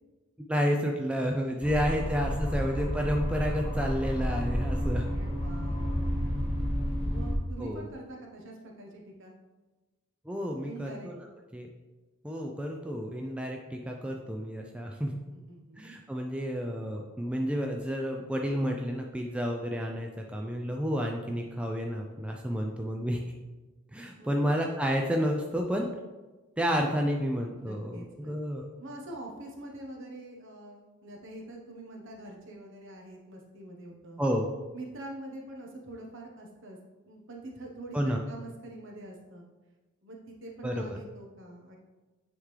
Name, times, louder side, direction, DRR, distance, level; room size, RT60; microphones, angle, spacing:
voice 1, 0.5-5.0 7.6-7.8 10.3-11.3 11.5-11.7 12.2-15.1 15.8-23.2 23.9-25.9 26.6-28.7 34.2-34.5 37.9-38.2 40.6-41.0, equal, 5° right, 1 dB, 0.3 m, -30 dB
sound 1, 1.6-7.4, equal, 30° left, 1.4 m, -30 dB
voice 2, 4.8-6.5 7.0-9.3 10.6-11.1 15.3-15.9 24.2-24.5 27.6-34.2 34.7-36.8 37.0-39.5 40.0-41.8, right 1 dB, 60° right, 0 dB, 1.1 m, -45 dB
9.5 x 3.6 x 3.2 m, 1.2 s
head